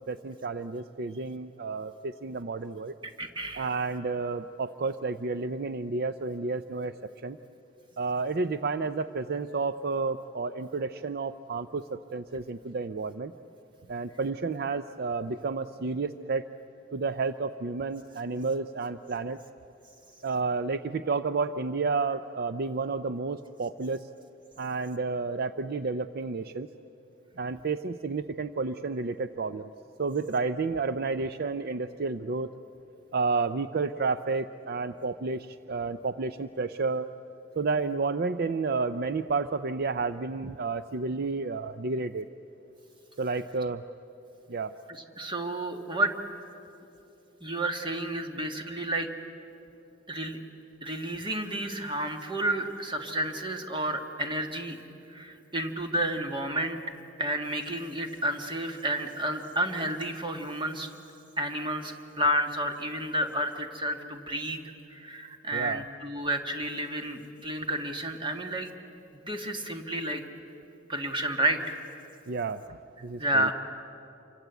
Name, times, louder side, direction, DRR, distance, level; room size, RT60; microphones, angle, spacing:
voice 1, 0.0-2.9 3.6-7.0 7.2-7.4 8.0-11.8 12.1-13.3 13.9-16.4 16.9-19.4 20.2-24.0 24.6-26.7 27.4-29.7 30.0-32.5 33.1-37.1 37.6-42.3 43.2-43.8 44.5-44.7 65.5-65.8 72.3-73.5, right 4 dB, 55° right, 11 dB, 0.5 m, -31 dB
voice 2, 3.0-3.7 45.2-46.1 47.4-49.1 50.1-50.4 50.8-54.8 55.1-56.8 57.2-60.9 61.4-64.6 64.9-68.7 69.1-70.2 70.9-71.8 73.2-73.5, right 1 dB, 25° right, 4 dB, 1.9 m, -31 dB
27.5 x 24.5 x 8.2 m, 3.0 s
head